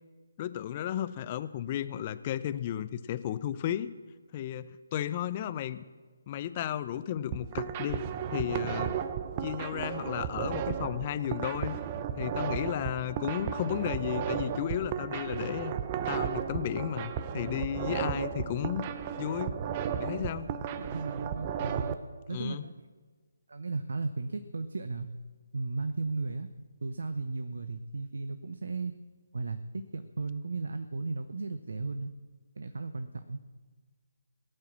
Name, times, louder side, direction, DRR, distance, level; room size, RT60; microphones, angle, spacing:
voice 1, 0.4-3.9 4.3-5.8 6.3-8.0 8.3-8.9 9.4-11.8 12.2-15.7 16.1-18.8 19.2-19.6 20.0-20.5 22.3-22.7, left 11 dB, 30° left, 14 dB, 0.7 m, -33 dB
sound 1, 7.2-21.9, right 8 dB, 30° right, 0.8 m, -34 dB
voice 2, 19.8-20.2 20.7-22.0 22.3-22.7 23.5-25.1 25.5-26.5 26.8-28.9 29.3-32.1 32.6-33.4, right 3 dB, 70° right, 10 dB, 0.9 m, -35 dB
18.5 x 9.0 x 7.3 m, 1.4 s
figure-of-eight pair, 150°, 0 cm